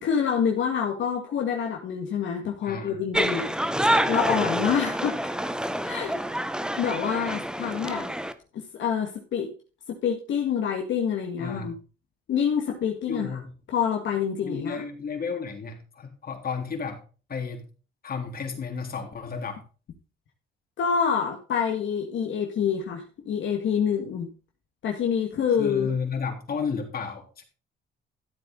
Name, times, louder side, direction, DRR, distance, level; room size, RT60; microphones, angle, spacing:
voice 1, 0.0-3.5 4.1-5.2 5.8-6.2 6.8-8.1 8.5-9.5 9.9-11.7 12.3-13.4 13.7-14.8 20.8-24.3 24.8-25.9, left 7 dB, 70° left, 1 dB, 1.9 m, -27 dB
voice 2, 2.6-3.0 11.4-11.7 13.1-13.5 14.4-17.0 17.3-17.7 18.0-19.6 25.6-27.4, left 5 dB, 50° left, 3 dB, 3.5 m, -32 dB
sound 1, 3.1-8.3, right 1 dB, 5° right, 1.1 m, -27 dB
13.5 x 8.0 x 4.0 m, 0.35 s
cardioid pair, 90°, 20 cm